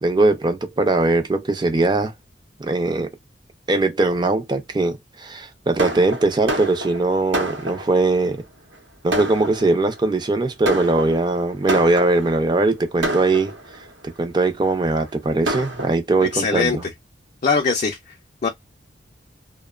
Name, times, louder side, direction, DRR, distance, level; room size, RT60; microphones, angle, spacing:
voice 1, 0.0-2.1 2.6-3.1 3.7-8.4 9.0-13.6 14.0-16.8, right 2 dB, 25° right, 0.5 m, -20 dB
Fireworks, 5.8-8.1 8.7-8.8 9.1-10.0 10.6-12.4 13.0-13.9 14.6-14.7 15.1-15.2 15.5-15.9, right 1 dB, 75° right, 0.8 m, -28 dB
voice 2, 16.3-16.8 17.4-18.0 18.4-18.5, left 4 dB, 40° left, 0.5 m, -20 dB
2.7 x 2.1 x 2.3 m
head